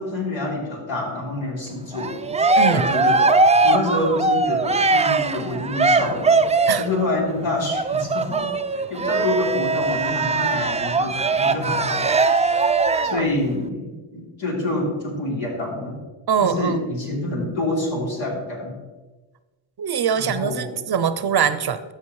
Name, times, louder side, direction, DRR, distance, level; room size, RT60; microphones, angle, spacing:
voice 1, 0.0-2.3 2.7-3.3 3.6-6.4 6.8-12.0 13.0-16.0 16.4-18.8 20.1-20.7, left 2 dB, 70° left, -3 dB, 3.2 m, -27 dB
Cheering, 1.9-7.0 7.7-13.3, right 3 dB, 15° right, 0.4 m, -20 dB
voice 2, 2.6-2.9 6.7-6.9 12.9-13.3 16.3-16.9 19.8-21.9, right 7 dB, 50° right, 12 dB, 0.6 m, -23 dB
13.5 x 6.1 x 3.1 m, 1.2 s
cardioid pair, 55°, 48 cm